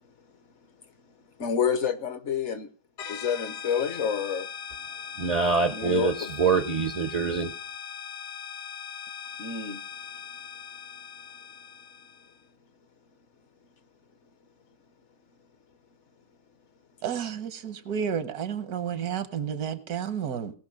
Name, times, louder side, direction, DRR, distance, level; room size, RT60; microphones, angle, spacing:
voice 1, 1.4-2.7 3.1-4.5 5.7-6.3 9.4-9.8, left 7 dB, 55° left, 11 dB, 1.0 m, -28 dB
sound 1, 3.0-12.4, left 7 dB, 70° left, 1.6 m, -40 dB
voice 2, 5.2-7.5, right 5 dB, 50° right, 10 dB, 0.4 m, -25 dB
voice 3, 17.0-20.5, right 8 dB, 85° right, 11 dB, 1.5 m, -31 dB
17.5 x 6.0 x 6.3 m, 0.42 s
omnidirectional pair, 1.6 m